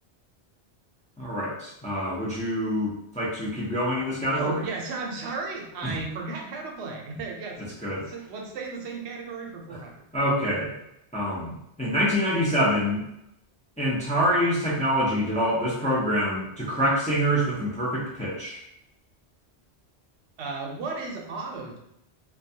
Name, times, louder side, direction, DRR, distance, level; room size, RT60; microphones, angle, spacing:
voice 1, 1.2-4.6 5.8-5.9 7.8-8.0 9.7-9.8 10.1-10.7 11.1-13.0 13.8-18.6, equal, 10° left, -7 dB, 0.3 m, -26 dB
voice 2, 4.3-7.7 8.0-9.9 20.4-21.8, right 3 dB, 75° right, 0 dB, 0.8 m, -34 dB
2.2 x 2.2 x 2.6 m, 0.80 s
omnidirectional pair, 1.2 m